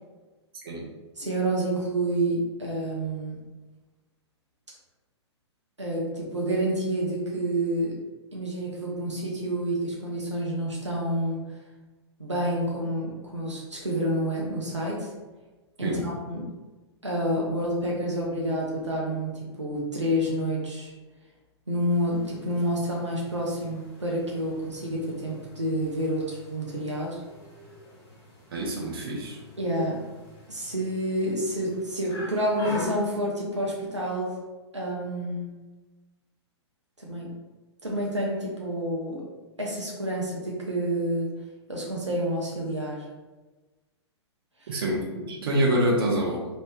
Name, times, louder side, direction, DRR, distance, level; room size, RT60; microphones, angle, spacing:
voice 1, 1.2-3.4 5.8-8.0 8.3-11.4 12.2-15.1 15.8-16.5 17.0-20.9 21.7-27.2 29.6-30.0 30.5-34.4 34.7-35.5 37.0-37.3 37.8-39.2 39.6-41.3 41.7-43.1 44.6-44.8, right 1 dB, 85° right, -3 dB, 0.7 m, -29 dB
sound 1, 21.9-32.8, left 1 dB, 25° left, 1.2 m, -44 dB
voice 2, 28.5-29.4 44.7-46.5, right 1 dB, 50° right, -2 dB, 0.9 m, -26 dB
3.1 x 2.8 x 2.2 m, 1.2 s
figure-of-eight pair, 110°, 15 cm